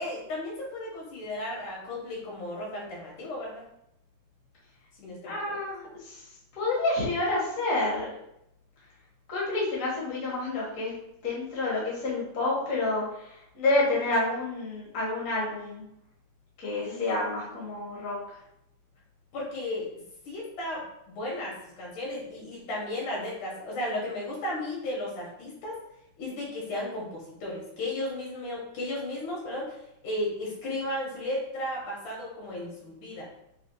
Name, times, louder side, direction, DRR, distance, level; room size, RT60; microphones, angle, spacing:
voice 1, 0.0-3.6 5.0-5.6 16.8-17.1 19.3-19.9 20.3-25.8 26.2-29.8 30.0-33.3, left 1 dB, 70° left, -4 dB, 2.8 m, -34 dB
voice 2, 5.3-6.2 6.5-8.1 9.3-10.9 11.2-15.8 16.6-18.2, left 2 dB, 45° left, -6 dB, 1.1 m, -29 dB
6.4 x 2.4 x 2.7 m, 0.79 s
omnidirectional pair, 3.7 m